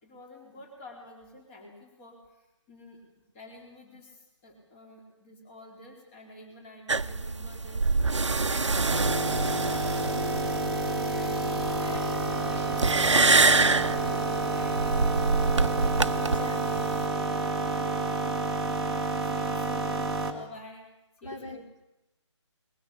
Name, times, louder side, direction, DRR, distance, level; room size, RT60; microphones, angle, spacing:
voice 1, 0.0-3.0 3.3-7.9 8.4-10.1 10.5-12.7 13.0-15.2 17.1-18.3 19.2-20.0 20.3-20.9 21.2-21.6, left 2 dB, 20° left, 1 dB, 4.4 m, -49 dB
sound 1, 6.9-17.1, right 3 dB, 70° right, 0.9 m, -26 dB
sound 2, 8.9-20.3, right 2 dB, ahead, 1.7 m, -29 dB
voice 2, 16.1-17.2 21.2-21.8, left 2 dB, 90° left, 2 dB, 4.8 m, -42 dB
21.0 x 19.5 x 8.5 m, 0.96 s
figure-of-eight pair, 150°, 16 cm